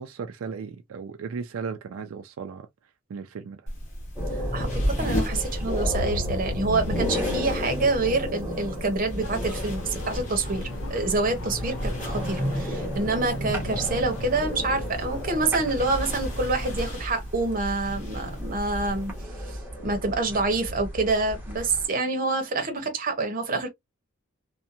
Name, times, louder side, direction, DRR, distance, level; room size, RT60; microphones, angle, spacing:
voice 1, 0.0-2.7 3.1-3.6, right 5 dB, 80° right, 0.4 m, -36 dB
sound 1, 3.7-19.2, equal, 35° left, 0.9 m, -35 dB
sound 2, 4.2-21.9, equal, 10° right, 0.9 m, -33 dB
voice 2, 4.5-19.1 19.5-23.7, right 3 dB, 40° right, 0.8 m, -27 dB
sound 3, 9.2-16.9, left 2 dB, 70° left, 0.6 m, -40 dB
2.7 x 2.1 x 2.5 m
head